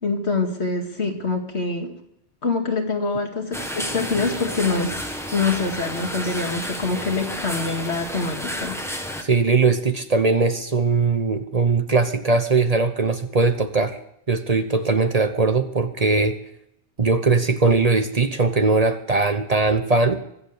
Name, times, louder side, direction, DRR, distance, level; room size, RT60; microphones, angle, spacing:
voice 1, 0.0-1.9 2.4-4.9 5.3-8.8, left 3 dB, 75° left, 3 dB, 2.5 m, -25 dB
sound 1, 3.5-9.2, equal, ahead, 1.4 m, -31 dB
voice 2, 9.2-14.0 14.3-16.4 17.0-20.2, right 3 dB, 35° right, 9 dB, 1.0 m, -20 dB
24.0 x 8.1 x 6.6 m, 0.76 s
omnidirectional pair, 1.2 m